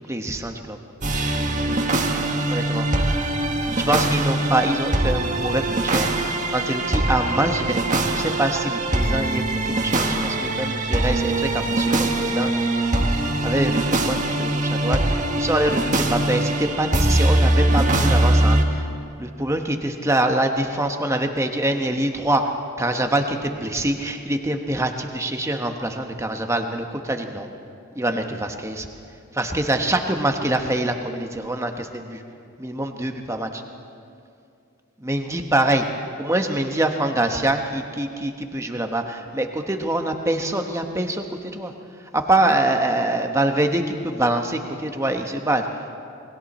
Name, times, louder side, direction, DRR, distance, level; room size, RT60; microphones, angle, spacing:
voice 1, 0.1-0.8 2.5-2.9 3.8-12.5 13.4-18.9 19.2-22.5 22.8-27.5 27.9-28.9 29.3-32.2 32.6-33.6 35.0-35.9 36.2-41.7 42.1-46.0, right 1 dB, 15° right, 4 dB, 1.2 m, -24 dB
sound 1, 1.0-18.6, right 1 dB, 35° right, 1.5 m, -22 dB
28.5 x 21.5 x 4.3 m, 2.5 s
head